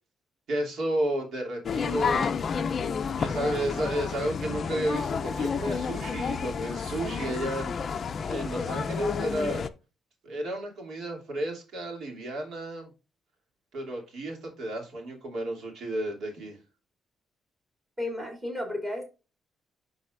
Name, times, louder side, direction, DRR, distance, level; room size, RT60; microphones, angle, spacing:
voice 1, 0.5-2.3 3.1-7.7 8.2-9.6 10.2-12.9 13.7-16.6, right 1 dB, 60° right, 2.8 m, -32 dB
sound 1, 1.6-9.7, left 6 dB, 35° left, 0.5 m, -30 dB
voice 2, 18.0-19.1, left 1 dB, 15° right, 3.0 m, -33 dB
11.5 x 4.1 x 2.5 m
cardioid pair, 165°, 0 cm